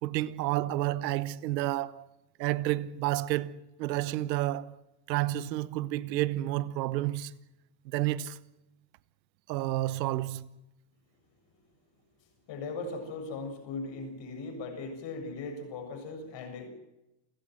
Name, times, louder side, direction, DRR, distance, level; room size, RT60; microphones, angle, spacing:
voice 1, 0.0-2.1 2.4-4.8 5.1-7.3 7.8-8.4 9.5-10.5, right 15 dB, 90° right, 1.1 m, -30 dB
voice 2, 12.5-16.7, left 3 dB, 60° left, 7.4 m, -38 dB
28.5 x 15.5 x 7.9 m
supercardioid pair, 90°, 49 cm